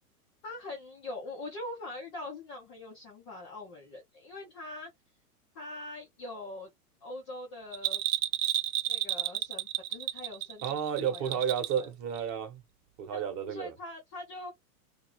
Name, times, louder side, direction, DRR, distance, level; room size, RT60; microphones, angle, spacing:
voice 1, 0.4-4.9 5.6-6.7 7.0-8.0 8.9-10.8 11.1-11.4 11.8-11.9 13.1-14.5, left 2 dB, 20° left, 0.3 m, -43 dB
Bell, 7.7-11.9 12.1-12.2, right 13 dB, 55° right, 0.5 m, -31 dB
voice 2, 10.6-12.6 13.0-13.7, right 8 dB, 35° right, 0.9 m, -32 dB
2.4 x 2.3 x 3.0 m
hypercardioid pair, 130°, 46 cm